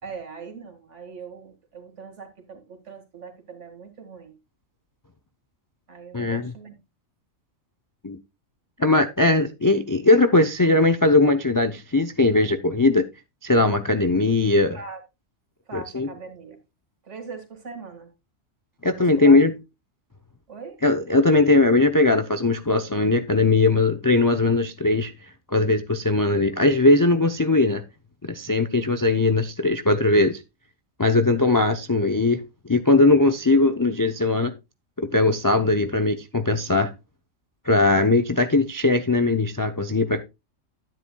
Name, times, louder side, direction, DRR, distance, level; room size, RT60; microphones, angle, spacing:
voice 1, 0.0-4.3 5.9-6.7 14.7-15.0 15.7-16.6 17.0-18.1 19.2-19.4 20.5-20.8, right 4 dB, 60° right, 2.2 m, -40 dB
voice 2, 6.1-6.5 8.0-8.2 8.8-13.1 13.4-14.8 15.7-16.1 18.8-19.5 20.8-25.1 25.5-27.8 28.3-30.4 31.0-34.5 35.0-36.9 37.7-40.2, left 2 dB, 30° left, 0.3 m, -19 dB
10.5 x 9.9 x 2.3 m
omnidirectional pair, 1.4 m